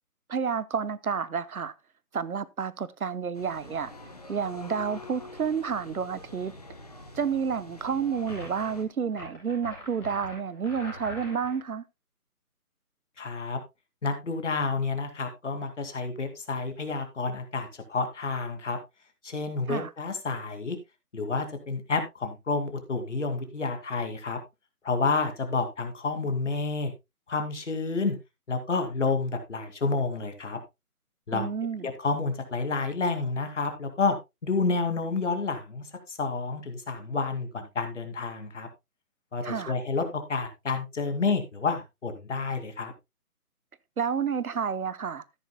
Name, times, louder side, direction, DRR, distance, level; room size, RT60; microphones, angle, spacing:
voice 1, 0.3-1.7 2.1-3.9 4.3-6.5 7.1-11.8 19.7-19.9 31.3-31.9 39.4-39.7 44.0-45.2, right 6 dB, 65° right, 0.9 m, -30 dB
sound 1, 3.3-8.9, left 2 dB, 25° left, 1.0 m, -46 dB
sound 2, 8.3-8.7 9.1-11.6, left 1 dB, 5° left, 2.9 m, -43 dB
voice 2, 13.2-13.6 14.0-18.8 19.2-20.8 21.1-24.4 24.8-26.9 27.3-28.2 28.5-30.6 31.3-31.5 31.8-34.2 34.4-38.7 39.3-42.9, left 4 dB, 50° left, 2.3 m, -29 dB
13.5 x 10.5 x 2.2 m
hypercardioid pair, 175°, 46 cm